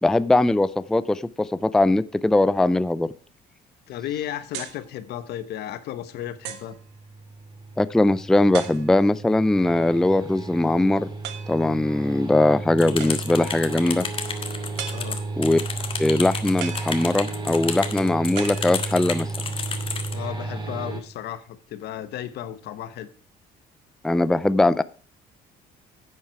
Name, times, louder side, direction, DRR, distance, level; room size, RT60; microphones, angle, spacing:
voice 1, 0.0-3.1 7.8-11.1 11.5-14.1 15.4-15.6 16.0-19.3 24.0-24.8, left 2 dB, 5° left, 15 dB, 0.4 m, -20 dB
voice 2, 3.9-6.8 14.9-15.2 20.1-23.1, left 11 dB, 75° left, 13 dB, 1.1 m, -34 dB
sound 1, 4.5-4.9 5.6-5.7 6.4-6.8 8.5-9.2 11.2-11.7 13.0-13.5 14.8-15.5 16.6-17.5 18.4-19.2, right 10 dB, 90° right, 1.4 m, -37 dB
sound 2, 6.2-21.0, right 3 dB, 25° right, 2.9 m, -34 dB
sound 3, 12.8-20.2, left 5 dB, 30° left, 1.5 m, -32 dB
10.5 x 7.4 x 4.7 m, 0.41 s
cardioid pair, 110°, 17 cm